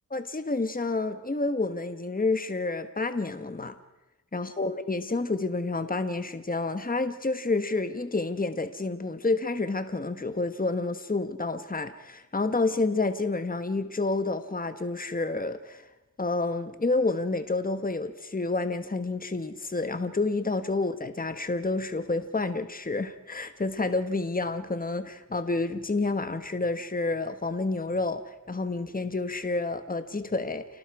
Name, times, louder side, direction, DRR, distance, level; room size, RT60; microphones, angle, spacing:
voice 1, 0.1-3.7 4.3-15.8 16.2-30.7, left 3 dB, 25° left, 9 dB, 1.3 m, -29 dB
29.0 x 18.5 x 4.8 m, 1.0 s
cardioid pair, 50°, 32 cm